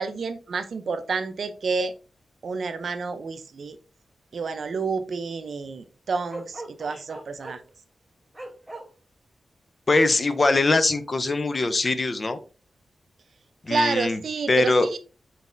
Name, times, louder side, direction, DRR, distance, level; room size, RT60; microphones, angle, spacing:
voice 1, 0.0-1.9 2.4-3.8 4.3-7.6 13.7-15.0, right 4 dB, 60° right, 10 dB, 0.4 m, -29 dB
Bark, 6.3-7.7 8.3-8.8, right 2 dB, 5° right, 1.0 m, -38 dB
voice 2, 9.9-12.4 13.6-14.2 14.5-14.9, left 3 dB, 35° left, 11 dB, 0.5 m, -22 dB
4.0 x 4.0 x 2.5 m, 0.34 s
wide cardioid pair, 135°, 0 cm